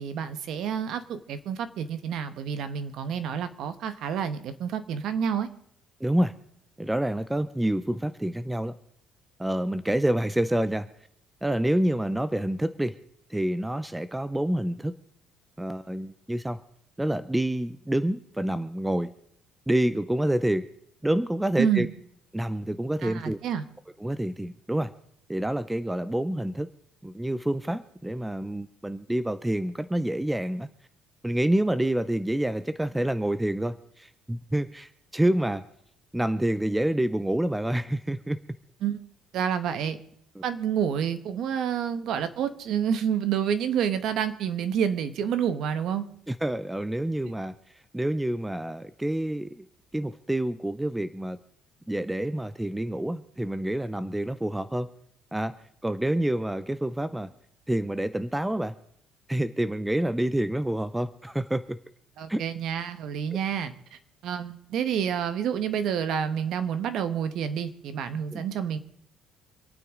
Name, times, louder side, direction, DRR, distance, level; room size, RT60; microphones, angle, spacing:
voice 1, 0.0-5.5 21.6-21.9 23.0-23.6 38.8-39.0 39.3-40.0 40.4-46.0 62.2-68.8, right 8 dB, 55° right, 11 dB, 1.2 m, -28 dB
voice 2, 6.0-6.3 6.8-8.7 9.4-10.9 11.4-13.0 13.3-14.9 15.6-16.6 17.0-19.1 19.7-20.7 21.0-21.9 22.3-23.4 24.0-24.9 25.3-26.7 27.0-30.7 31.2-35.6 36.1-38.4 40.4-40.5 46.3-47.5 47.9-49.7 49.9-51.4 51.9-54.9 55.3-55.6 55.8-57.3 57.7-58.7 59.3-61.8 62.3-62.4 68.3-68.4, right 1 dB, 5° right, 12 dB, 0.4 m, -27 dB
26.5 x 9.3 x 3.7 m, 0.70 s
cardioid pair, 175°, 0 cm